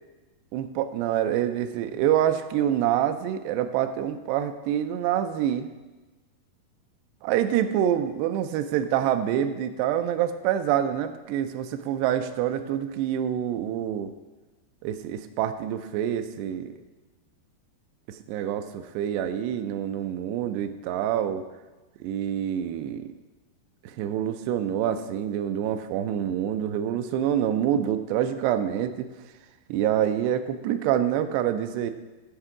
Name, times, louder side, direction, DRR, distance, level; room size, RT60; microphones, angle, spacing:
voice 1, 0.5-5.7 7.2-14.1 14.8-16.7 18.1-21.4 22.0-23.1 23.8-29.1 29.7-31.9, right 10 dB, 85° right, 9 dB, 2.6 m, -26 dB
12.5 x 4.5 x 4.8 m, 1.2 s
omnidirectional pair, 4.7 m